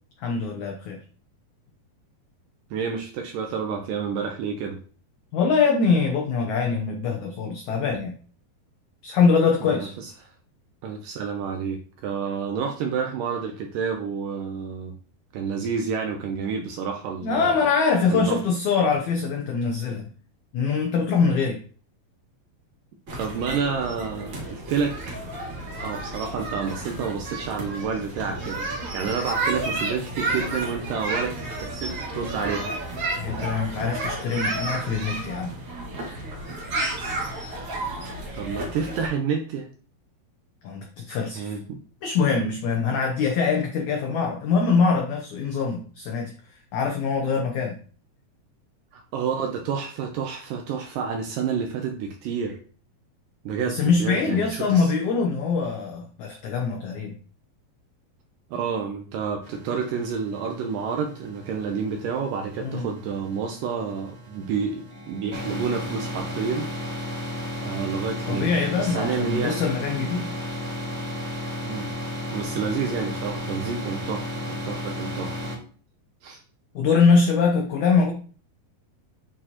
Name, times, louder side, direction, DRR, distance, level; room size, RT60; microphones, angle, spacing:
voice 1, 0.2-1.0 5.3-8.1 9.0-9.9 17.2-20.1 20.5-21.6 33.2-35.5 40.6-41.6 42.0-46.3 46.7-47.8 53.7-57.1 62.6-62.9 68.3-70.3 76.7-78.1, left 5 dB, 85° left, 2 dB, 1.6 m, -23 dB
voice 2, 2.7-4.8 9.7-10.1 10.8-14.9 15.3-17.7 18.1-18.4 23.2-25.0 25.8-28.7 28.9-32.7 38.3-39.7 41.3-41.8 48.9-52.6 53.5-54.9 58.5-66.7 67.6-68.5 68.8-69.6 71.6-71.9 72.3-75.5 76.2-76.4, right 6 dB, 75° right, 3 dB, 2.0 m, -29 dB
sound 1, 23.1-39.1, right 2 dB, 50° right, 1.5 m, -32 dB
sound 2, 59.4-75.6, left 1 dB, 30° right, 1.2 m, -34 dB
8.6 x 4.6 x 2.9 m, 0.41 s
omnidirectional pair, 4.5 m